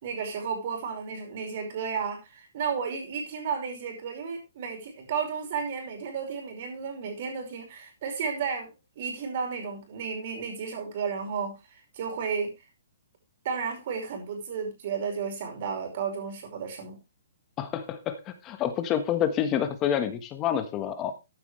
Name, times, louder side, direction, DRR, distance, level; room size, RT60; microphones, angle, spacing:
voice 1, 0.0-11.6 11.9-12.5 13.4-17.0, right 6 dB, 40° right, 5.3 m, -33 dB
voice 2, 17.6-21.1, left 9 dB, 20° left, 1.4 m, -28 dB
14.5 x 9.7 x 3.3 m
hypercardioid pair, 170°, 0 cm